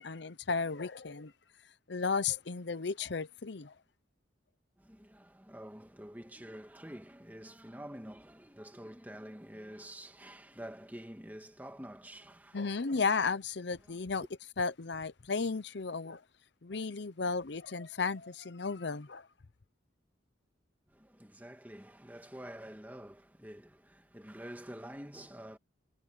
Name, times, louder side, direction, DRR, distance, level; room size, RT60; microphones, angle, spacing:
voice 1, 0.0-1.3 1.9-3.7 12.5-14.2 14.6-16.2 16.6-19.3, left 4 dB, 65° left, 0.7 m, -34 dB
voice 2, 4.8-12.8 13.8-14.0 20.9-25.6, equal, 10° right, 2.0 m, -48 dB
head